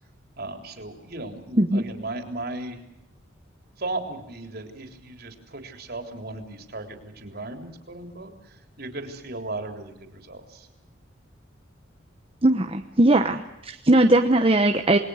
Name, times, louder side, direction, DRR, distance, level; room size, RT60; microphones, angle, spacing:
voice 1, 0.4-2.8 3.8-10.7, right 2 dB, 50° right, 5 dB, 3.7 m, -36 dB
voice 2, 12.4-15.0, right 1 dB, 30° right, 5 dB, 1.0 m, -19 dB
28.0 x 21.0 x 6.4 m, 0.90 s
head